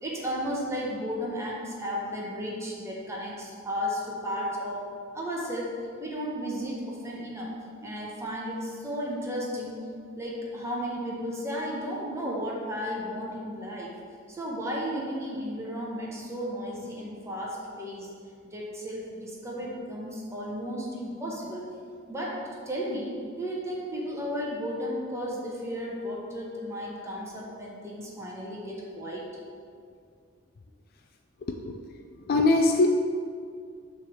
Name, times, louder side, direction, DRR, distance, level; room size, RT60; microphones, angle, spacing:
voice 1, 0.0-4.8 5.1-5.7 6.0-7.5 7.8-9.8 10.2-13.9 14.3-18.1 18.5-21.7 22.1-22.4 22.7-29.3, equal, 15° right, -4 dB, 1.0 m, -34 dB
voice 2, 31.4-31.8 32.3-32.9, left 2 dB, 50° left, 4 dB, 0.4 m, -22 dB
6.8 x 3.4 x 6.1 m, 2.2 s
head